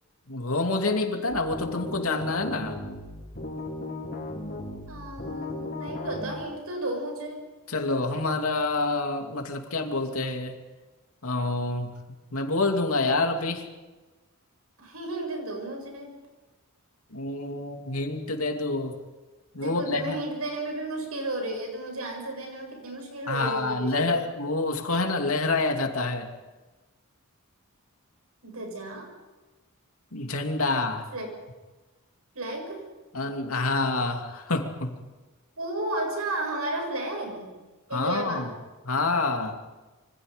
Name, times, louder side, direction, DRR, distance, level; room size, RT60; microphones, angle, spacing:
voice 1, 0.3-2.8 7.7-10.6 11.2-11.9 12.3-13.7 17.1-18.9 19.5-20.2 23.3-26.3 30.1-31.1 33.1-35.0 37.9-38.5 38.8-39.6, left 3 dB, 80° left, 3 dB, 2.8 m, -27 dB
sound 1, 1.3-6.3, left 2 dB, 50° left, 4.5 m, -36 dB
voice 2, 4.9-7.5 14.8-16.1 19.5-24.3 28.4-29.1 31.1-31.3 32.3-32.8 35.6-37.5 37.9-38.5, right 1 dB, 90° right, 2 dB, 7.2 m, -33 dB
26.5 x 25.0 x 5.3 m, 1.2 s
head